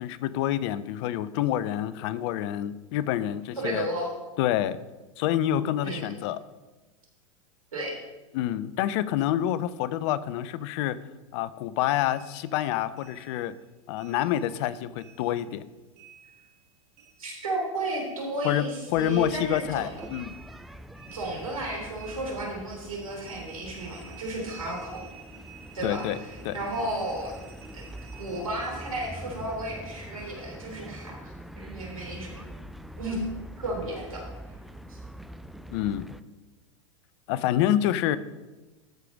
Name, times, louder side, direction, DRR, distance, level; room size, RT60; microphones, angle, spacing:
voice 1, 0.0-3.9 4.4-4.8 5.2-6.4 8.3-11.0 11.3-13.5 13.9-15.6 18.4-18.6 18.9-20.4 25.8-26.2 26.4-26.6 35.7-36.1 37.3-38.2, left 12 dB, 55° left, 16 dB, 0.6 m, -27 dB
voice 2, 3.6-4.1 5.8-6.1 7.7-8.0 17.2-19.9 21.1-25.0 25.7-27.3 27.7-27.9 28.2-32.5 33.0-33.2 33.6-34.2 34.5-34.6 34.9-35.0, right 1 dB, 85° right, -1 dB, 3.4 m, -33 dB
sound 1, 12.0-14.7 14.9-17.7 17.9-29.7, right 6 dB, 55° right, 2.3 m, -52 dB
sound 2, 18.9-36.2, equal, ahead, 0.3 m, -44 dB
13.0 x 4.9 x 5.2 m, 1.1 s
hypercardioid pair, 100°, 17 cm